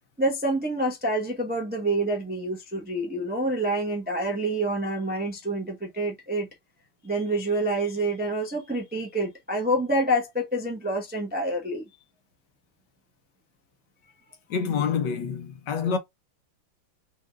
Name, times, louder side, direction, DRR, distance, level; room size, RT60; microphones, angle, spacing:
voice 1, 0.2-6.5 7.0-11.9, right 1 dB, 15° right, 0.3 m, -27 dB
voice 2, 14.5-16.0, left 6 dB, 65° left, 1.2 m, -27 dB
5.0 x 2.5 x 3.3 m
omnidirectional pair, 2.4 m